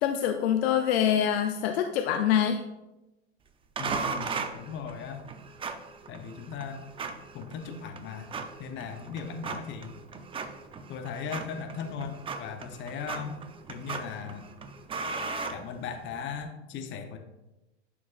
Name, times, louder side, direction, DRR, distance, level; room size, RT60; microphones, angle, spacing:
voice 1, 0.0-2.6, left 9 dB, 70° left, 6 dB, 0.6 m, -25 dB
voice 2, 3.8-5.3 6.1-6.9 7.3-8.3 8.6-10.0 10.9-13.4 13.7-14.5 15.5-17.2, left 6 dB, 35° left, 6 dB, 0.8 m, -38 dB
sound 1, 3.8-16.2, right 4 dB, 15° right, 0.5 m, -38 dB
11.0 x 4.6 x 2.5 m, 0.98 s
hypercardioid pair, 110°, 33 cm